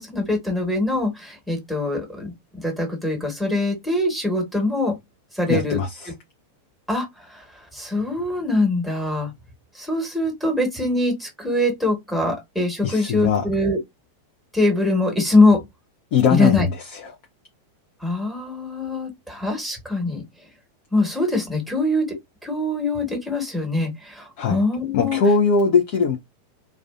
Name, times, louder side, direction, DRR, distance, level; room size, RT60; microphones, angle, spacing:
voice 1, 0.0-4.9 5.3-5.8 6.9-7.1 7.3-7.4 7.7-9.3 9.7-13.8 14.5-15.6 16.3-16.6 18.0-20.2 20.9-22.1 22.4-25.2, left 2 dB, 5° left, 1.2 m, -23 dB
voice 2, 5.5-6.1 12.8-13.4 16.1-17.1 24.4-24.6 24.9-26.2, left 5 dB, 45° left, 0.5 m, -20 dB
2.4 x 2.3 x 2.3 m
figure-of-eight pair, 90°, 0 cm